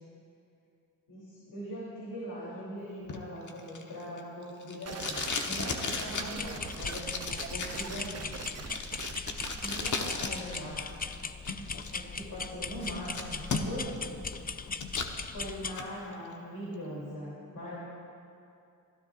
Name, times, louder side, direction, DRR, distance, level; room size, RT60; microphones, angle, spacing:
voice 1, 1.1-8.4 9.6-10.9 11.9-14.4 15.3-17.8, equal, 85° left, -7 dB, 3.4 m, -41 dB
Packing tape duct tape, 3.1-10.6 10.9-11.9 12.4-12.5 12.8-14.0 14.3-15.1 15.5-15.9, left 4 dB, 60° left, 1.3 m, -36 dB
sound 1, 4.8-10.2, right 6 dB, 50° right, 0.8 m, -42 dB
sound 2, 6.3-15.7, left 5 dB, 25° left, 0.6 m, -39 dB
27.5 x 13.5 x 2.6 m, 2.6 s
cardioid pair, 65°, 34 cm